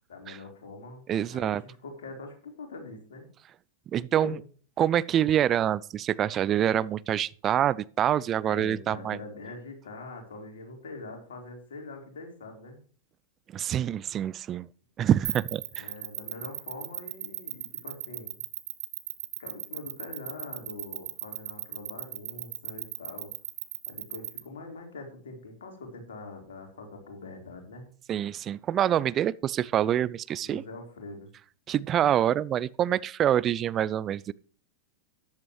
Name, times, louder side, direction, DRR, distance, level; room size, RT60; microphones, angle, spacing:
voice 1, 0.1-1.0 1.3-3.3 4.2-4.4 8.4-12.8 15.7-18.4 19.4-23.3 23.9-27.8 30.4-31.3, left 3 dB, 60° left, 4.3 m, -43 dB
voice 2, 1.1-1.6 3.9-4.4 4.8-9.2 13.5-14.7 15.0-15.9 28.1-30.6 31.7-34.3, right 10 dB, 30° right, 0.4 m, -26 dB
sound 1, 15.2-24.4, right 11 dB, 60° right, 1.6 m, -35 dB
14.0 x 10.5 x 3.2 m
figure-of-eight pair, 90°, 0 cm